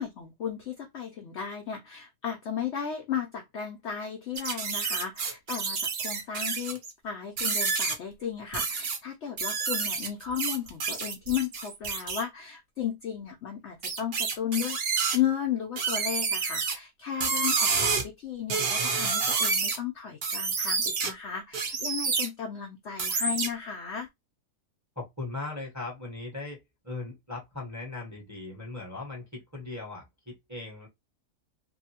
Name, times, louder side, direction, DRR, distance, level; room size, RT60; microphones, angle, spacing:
voice 1, 0.0-24.1, left 8 dB, 85° left, 0.6 m, -34 dB
sound 1, 4.3-6.9 7.4-7.9 8.5-9.0 9.4-12.2 13.8-15.2 15.8-16.7 17.2-18.0 18.5-19.8 20.2-21.1 21.5-22.3 23.0-23.5, right 5 dB, 55° right, 0.6 m, -28 dB
voice 2, 25.0-30.9, left 3 dB, 15° right, 0.6 m, -39 dB
2.7 x 2.6 x 2.8 m
omnidirectional pair, 1.8 m